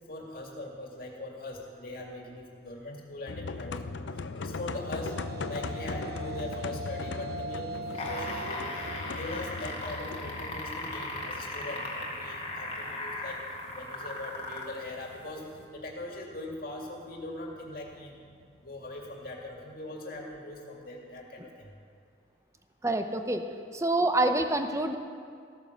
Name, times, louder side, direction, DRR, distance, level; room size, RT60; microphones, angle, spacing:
voice 1, 0.1-5.1 5.5-8.7 9.1-13.4 13.7-15.4 15.7-18.2 18.6-21.7, left 1 dB, 50° left, 0 dB, 2.3 m, -41 dB
sound 1, 3.3-19.4, left 3 dB, 85° left, 0.6 m, -40 dB
sound 2, 4.4-12.9, right 2 dB, 55° right, 0.9 m, -44 dB
sound 3, 7.8-14.8 15.6-15.7, left 2 dB, 30° left, 1.9 m, -37 dB
voice 2, 22.8-23.4 23.7-25.0, right 2 dB, 15° right, 7 dB, 0.7 m, -26 dB
15.5 x 9.5 x 6.7 m, 2.2 s
head